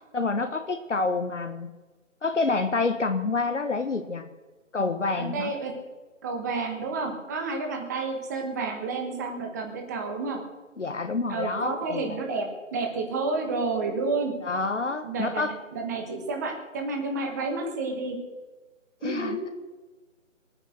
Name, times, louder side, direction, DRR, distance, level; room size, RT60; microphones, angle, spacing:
voice 1, 0.1-1.7 2.2-4.2 4.7-5.5 10.8-12.2 14.4-15.6 19.0-19.5, left 3 dB, 65° left, 7 dB, 1.3 m, -28 dB
voice 2, 5.1-5.7 6.2-10.4 11.3-14.3 15.0-18.2 19.0-19.5, right 3 dB, 15° right, 3 dB, 1.4 m, -30 dB
20.5 x 9.3 x 6.4 m, 1.3 s
figure-of-eight pair, 155°, 39 cm